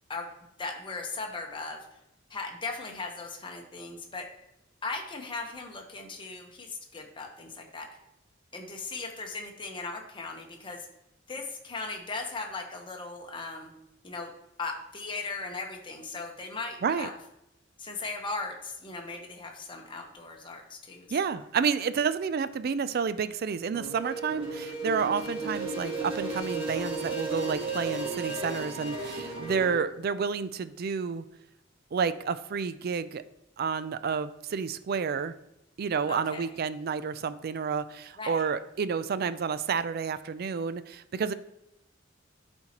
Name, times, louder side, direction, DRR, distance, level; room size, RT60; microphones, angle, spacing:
voice 1, 0.6-1.9 2.3-4.3 4.8-7.9 8.5-10.9 11.3-13.7 14.0-14.3 14.6-17.1 17.8-21.2 36.1-36.5 38.2-38.5, left 3 dB, 25° left, 2 dB, 1.0 m, -38 dB
voice 2, 21.1-31.3 31.9-33.2 33.6-35.3 35.8-41.3, right 6 dB, 50° right, 14 dB, 0.4 m, -30 dB
sound 1, 23.7-29.8, right 3 dB, 30° right, 1.5 m, -34 dB
11.5 x 4.3 x 2.9 m, 0.86 s
head